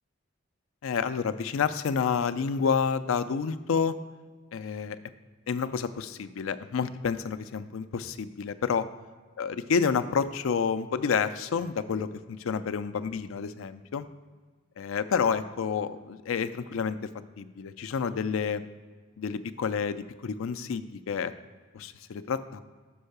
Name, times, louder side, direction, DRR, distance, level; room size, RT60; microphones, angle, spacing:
voice 1, 0.8-3.9 4.5-5.0 5.5-8.9 9.4-14.1 14.8-17.1 17.4-18.6 19.2-21.3 21.7-22.6, left 6 dB, 90° left, 13 dB, 0.4 m, -29 dB
5.5 x 5.5 x 6.6 m, 1.4 s
head